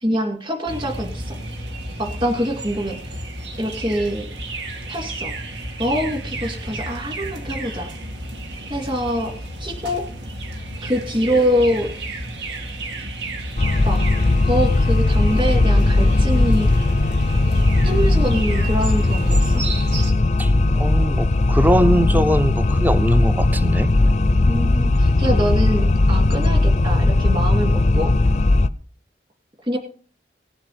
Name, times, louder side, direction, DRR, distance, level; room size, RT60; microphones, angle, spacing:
voice 1, 0.0-1.4 2.0-3.2 3.6-4.3 4.9-5.3 5.8-7.9 8.7-10.1 10.8-11.9 13.8-14.0 14.4-16.7 17.8-19.6 24.5-28.1 29.6-29.8, equal, 25° right, 2.6 m, -24 dB
sound 1, 0.7-20.1, right 1 dB, 80° right, 2.2 m, -32 dB
sound 2, 13.6-28.7, left 2 dB, 40° left, 0.5 m, -18 dB
voice 2, 20.4-23.9, equal, 10° right, 0.5 m, -21 dB
18.0 x 7.3 x 5.1 m
head